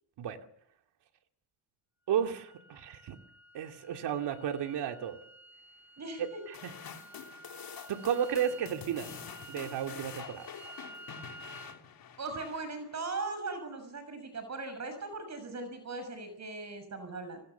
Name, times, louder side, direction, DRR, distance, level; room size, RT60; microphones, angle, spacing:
sound 1, 2.1-11.8, right 2 dB, 5° right, 1.8 m, -52 dB
voice 1, 2.1-3.2 3.5-5.2 6.2-6.7 7.9-9.2 9.5-10.5, right 9 dB, 75° right, 5 dB, 2.6 m, -33 dB
voice 2, 6.0-6.4 12.2-17.4, right 3 dB, 40° right, 9 dB, 6.4 m, -39 dB
sound 2, 6.5-13.1, left 7 dB, 55° left, 3.1 m, -47 dB
29.5 x 20.5 x 7.0 m, 0.69 s
cardioid pair, 100°, 41 cm